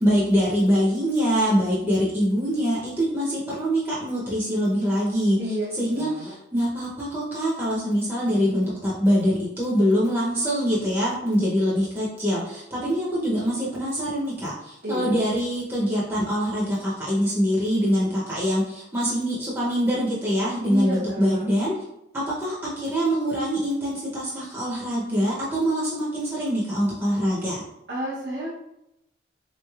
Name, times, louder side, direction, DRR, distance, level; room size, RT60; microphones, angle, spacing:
voice 1, 0.0-5.4 5.8-21.7 22.1-27.6, equal, 15° right, -8 dB, 0.6 m, -24 dB
voice 2, 5.4-6.3 14.8-15.3 20.6-21.5 27.9-28.5, equal, 65° right, -8 dB, 0.7 m, -30 dB
3.6 x 3.1 x 2.3 m, 0.86 s
head